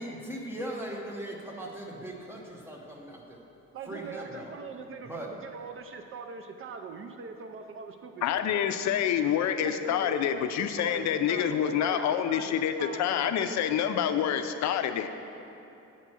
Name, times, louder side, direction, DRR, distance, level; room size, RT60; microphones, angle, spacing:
voice 1, 0.0-3.4 3.9-4.5 5.0-5.3, right 1 dB, 10° right, -1 dB, 1.0 m, -39 dB
voice 2, 3.7-8.6 9.6-14.2, right 4 dB, 45° right, 6 dB, 0.5 m, -42 dB
voice 3, 8.2-15.1, left 9 dB, 65° left, 9 dB, 0.4 m, -27 dB
9.1 x 4.4 x 6.1 m, 2.8 s
cardioid pair, 145°, 30 cm